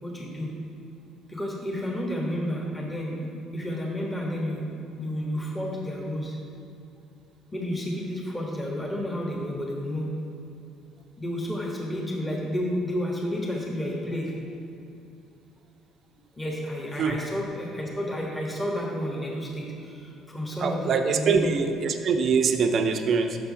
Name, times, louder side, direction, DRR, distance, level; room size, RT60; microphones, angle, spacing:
voice 1, 0.0-0.5 1.3-3.2 3.5-4.7 5.0-6.4 7.5-10.1 11.2-14.4 16.3-21.6 23.2-23.3, equal, 15° left, -2 dB, 1.4 m, -31 dB
voice 2, 20.6-23.4, right 5 dB, 50° right, 6 dB, 0.5 m, -24 dB
6.7 x 6.5 x 5.1 m, 2.8 s
figure-of-eight pair, 50°, 0 cm